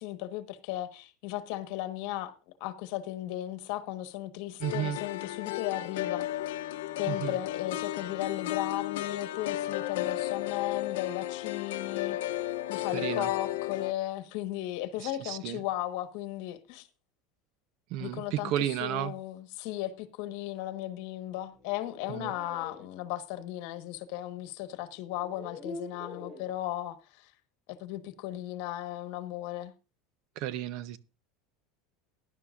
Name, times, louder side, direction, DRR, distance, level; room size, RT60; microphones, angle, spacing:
voice 1, 0.0-2.3 2.6-6.3 7.0-16.9 18.0-27.3 27.7-29.7, left 14 dB, 65° left, 1.3 m, -36 dB
sound 1, 4.6-13.9, left 14 dB, 90° left, 0.7 m, -34 dB
voice 2, 4.6-5.0 7.1-7.4 12.9-13.3 15.0-15.6 17.9-19.1 22.1-22.3 30.4-31.0, right 12 dB, 60° right, 0.8 m, -33 dB
sound 2, 21.5-22.9 24.3-24.4 25.1-26.5, left 3 dB, 10° left, 2.9 m, -44 dB
17.0 x 11.0 x 2.5 m
supercardioid pair, 140°, 0 cm